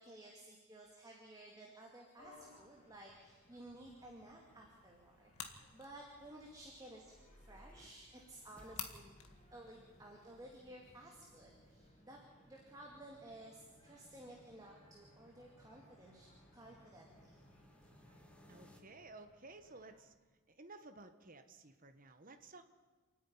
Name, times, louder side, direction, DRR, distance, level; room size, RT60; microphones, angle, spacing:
voice 1, 0.0-12.2 12.5-17.4, right 1 dB, 15° right, -1 dB, 2.5 m, -55 dB
sound 1, 2.2-20.0, left 1 dB, 30° left, 4.3 m, -68 dB
sound 2, 4.0-11.9, left 8 dB, 80° left, 2.0 m, -55 dB
sound 3, 6.8-18.8, equal, 5° left, 1.7 m, -64 dB
voice 2, 18.5-20.1 20.5-22.7, right 3 dB, 40° right, 8 dB, 1.3 m, -55 dB
28.0 x 9.7 x 9.7 m, 1.3 s
head